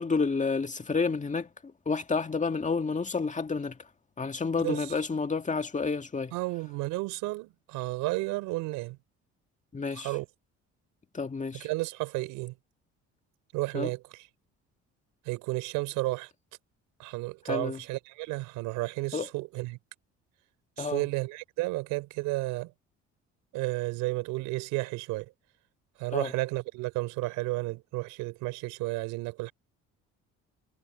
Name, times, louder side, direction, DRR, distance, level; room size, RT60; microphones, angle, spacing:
voice 1, 0.0-3.8 4.2-6.3 9.7-10.1 11.1-11.7 13.7-13.9 17.5-17.8 19.1-19.3 20.8-21.1 26.1-26.3, left 4 dB, 25° left, 2.0 m, -30 dB
voice 2, 6.3-9.0 9.9-10.3 11.5-12.5 13.5-14.2 15.3-16.3 17.0-19.8 20.8-22.7 23.5-25.3 26.0-29.5, right 21 dB, 85° right, 3.7 m, -32 dB
supercardioid pair, 80°, 31 cm